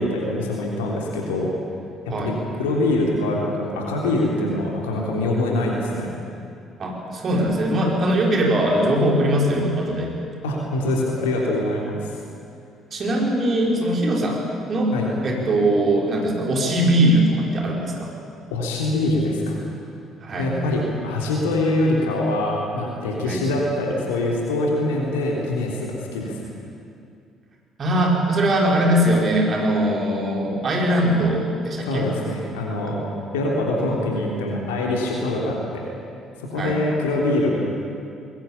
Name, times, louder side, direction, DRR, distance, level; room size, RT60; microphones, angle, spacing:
voice 1, 0.0-1.5 2.2-6.1 10.4-12.1 14.9-15.0 18.5-19.6 20.3-26.4 31.9-33.0 33.3-35.8 36.4-37.5, left 2 dB, 80° left, -2 dB, 3.4 m, -24 dB
voice 2, 6.8-10.1 12.9-14.4 14.7-14.9 15.2-18.1 20.2-20.5 23.3-23.4 27.8-32.1 36.6-36.8, right 1 dB, 45° right, -1 dB, 5.3 m, -21 dB
21.0 x 19.0 x 8.8 m, 2.5 s
hypercardioid pair, 50°, 0 cm